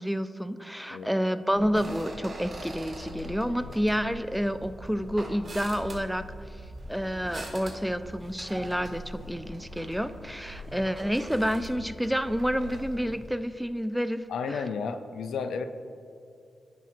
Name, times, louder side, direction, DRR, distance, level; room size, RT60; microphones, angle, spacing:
voice 1, 0.0-6.5 6.9-14.6, equal, 5° right, 12 dB, 0.3 m, -29 dB
sound 1, 1.5-13.3, equal, 50° right, 1.2 m, -42 dB
voice 2, 14.3-15.6, left 5 dB, 85° left, 9 dB, 0.3 m, -32 dB
9.0 x 5.7 x 2.5 m, 2.5 s
supercardioid pair, 45°, 0 cm